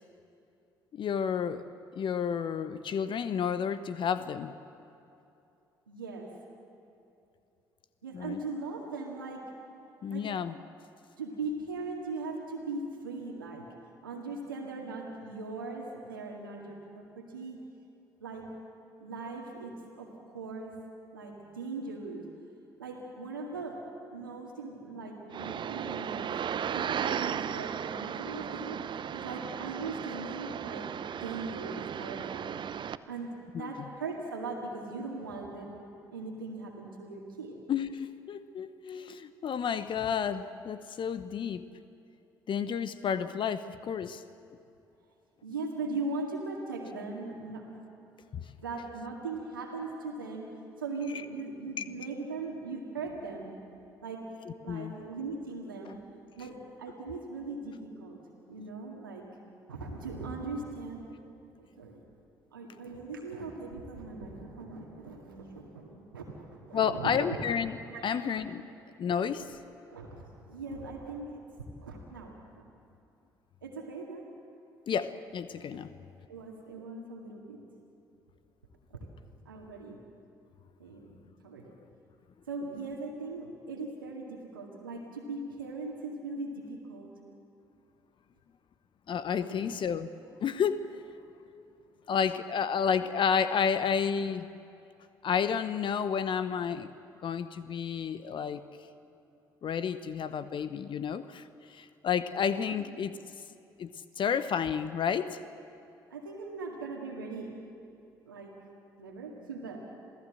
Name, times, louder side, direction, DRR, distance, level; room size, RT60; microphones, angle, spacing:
voice 1, 0.9-1.6 1.9-4.6 8.1-8.4 10.0-10.5 33.5-33.7 37.7-41.6 42.5-44.2 48.3-48.4 51.8-51.9 54.7-54.9 55.9-56.0 66.7-67.8 68.0-68.6 69.0-69.5 74.9-75.9 89.1-90.1 90.4-91.0 92.1-94.5 95.2-96.9 97.2-98.6 99.6-103.2 103.8-103.9 104.2-105.4, left 7 dB, 50° left, 13 dB, 0.9 m, -31 dB
voice 2, 5.9-6.3 8.0-9.5 10.1-10.3 11.2-13.7 14.0-17.6 18.2-18.5 19.0-20.8 21.1-22.3 22.8-23.8 24.1-26.4 26.7-28.8 29.1-30.9 31.2-32.6 33.1-35.7 36.1-37.6 45.4-47.6 48.6-50.5 50.8-53.6 54.0-54.2 54.6-56.0 56.4-58.2 58.5-59.2 59.7-61.2 61.6-62.0 62.5-67.4 67.9-68.1 69.2-69.3 69.9-71.4 71.8-72.6 73.6-74.2 75.7-75.8 76.3-77.6 78.9-79.1 79.5-80.0 80.8-81.1 81.4-81.7 82.5-87.1 89.4-89.6 106.1-107.5 108.2-108.5 109.0-109.8, right 3 dB, 90° right, 0 dB, 2.0 m, -39 dB
sound 1, 25.3-33.0, right 8 dB, 45° right, 0.7 m, -35 dB
27.5 x 17.0 x 7.7 m, 2.7 s
figure-of-eight pair, 45°, 11 cm